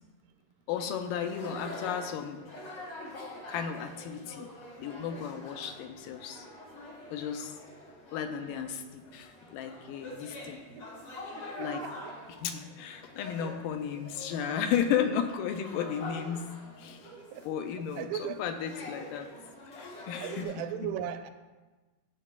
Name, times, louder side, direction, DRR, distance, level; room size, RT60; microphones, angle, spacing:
voice 1, 0.7-2.4 3.5-4.5 4.8-6.5 7.1-7.5 8.1-10.6 11.6-11.8 12.4-16.5 16.8-17.1 17.4-19.3 19.7-20.9, left 8 dB, 85° left, 7 dB, 2.2 m, -34 dB
sound 1, 0.7-20.4, left 1 dB, 60° left, 1.2 m, -45 dB
voice 2, 11.4-12.1 13.4-13.5 17.3-17.5 18.0-18.4 20.2-21.3, right 10 dB, 85° right, 8 dB, 2.2 m, -38 dB
12.5 x 7.5 x 2.4 m, 1.2 s
omnidirectional pair, 3.8 m